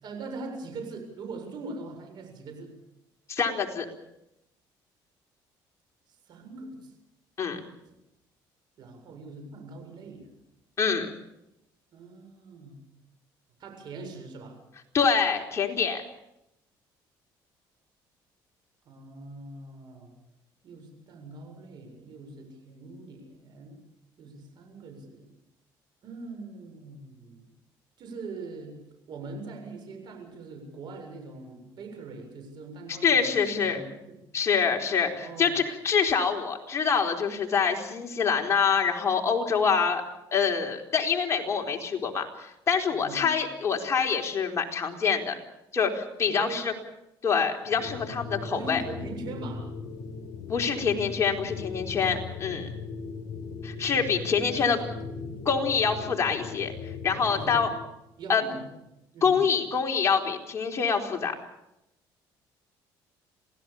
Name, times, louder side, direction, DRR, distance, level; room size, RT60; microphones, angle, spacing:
voice 1, 0.0-2.7 6.3-6.9 7.8-7.9 8.8-10.3 11.9-12.7 13.6-14.6 18.8-20.1 20.6-23.8 24.2-25.2 26.0-27.5 28.0-28.8 29.1-34.2 35.2-35.5 42.9-43.3 46.3-46.6 48.4-49.7 54.4-55.4 57.3-57.6 58.2-58.7 59.1-59.4, right 3 dB, 60° right, 4 dB, 7.3 m, -42 dB
voice 2, 3.3-3.9 7.4-7.6 10.8-11.1 14.9-16.0 32.9-33.8 34.3-40.0 40.3-45.3 45.7-46.7 47.2-48.8 50.5-52.7 53.6-54.8 55.5-56.7 57.0-57.7 58.3-58.4 59.2-61.3, left 6 dB, 35° left, 0 dB, 4.2 m, -25 dB
sound 1, 47.6-57.9, left 5 dB, 65° left, 6.2 m, -38 dB
27.5 x 17.0 x 7.2 m, 0.86 s
cardioid pair, 105°, 8 cm